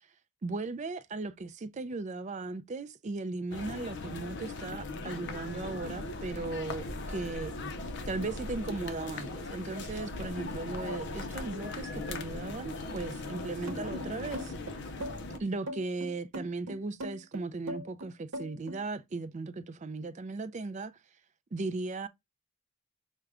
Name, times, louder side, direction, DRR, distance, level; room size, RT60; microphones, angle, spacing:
voice 1, 0.4-7.5 8.1-14.5 15.4-21.0 21.5-22.1, right 3 dB, 35° right, 0.4 m, -37 dB
sound 1, 3.5-15.4, left 2 dB, 55° left, 0.6 m, -39 dB
sound 2, 13.7-18.8, right 1 dB, 80° right, 0.9 m, -40 dB
4.9 x 2.2 x 3.3 m
head